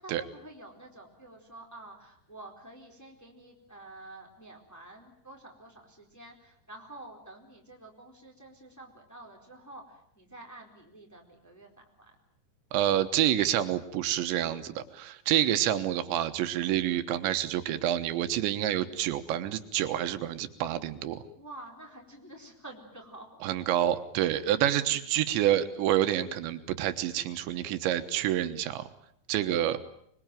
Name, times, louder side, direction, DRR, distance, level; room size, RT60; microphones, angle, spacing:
voice 1, 0.0-12.2 21.4-23.4 29.7-29.8, right 2 dB, 5° left, 1 dB, 3.6 m, -49 dB
voice 2, 12.7-21.2 23.4-28.9 29.3-29.8, right 12 dB, 90° right, 10 dB, 3.6 m, -28 dB
26.0 x 21.5 x 9.1 m, 0.69 s
omnidirectional pair, 5.0 m